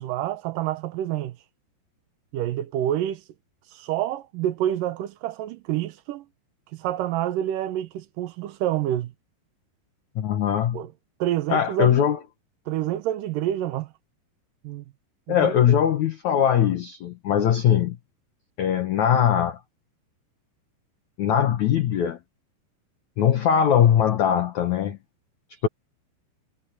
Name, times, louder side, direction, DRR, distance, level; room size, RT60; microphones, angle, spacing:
voice 1, 0.0-1.4 2.3-3.2 3.7-6.2 6.8-9.1 10.7-10.9 11.2-12.0 12.7-13.9 14.6-14.8 15.3-15.5, right 12 dB, 80° right, 1.9 m, -27 dB
voice 2, 10.1-10.8 11.5-12.2 15.3-18.0 18.6-19.6 21.2-22.2 23.2-25.0 25.6-25.7, left 9 dB, 80° left, 1.6 m, -21 dB
omnidirectional pair, 5.1 m